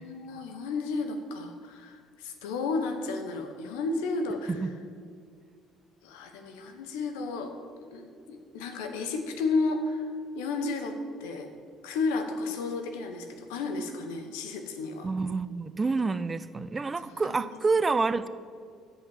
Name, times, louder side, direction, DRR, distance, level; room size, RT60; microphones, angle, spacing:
voice 1, 0.0-4.5 6.0-7.5 7.9-11.5 11.8-15.1 17.2-17.5, left 3 dB, 90° left, 6 dB, 1.0 m, -32 dB
voice 2, 15.0-18.3, right 4 dB, 30° right, 14 dB, 0.4 m, -28 dB
8.1 x 5.8 x 7.6 m, 2.1 s
supercardioid pair, 75°, 0 cm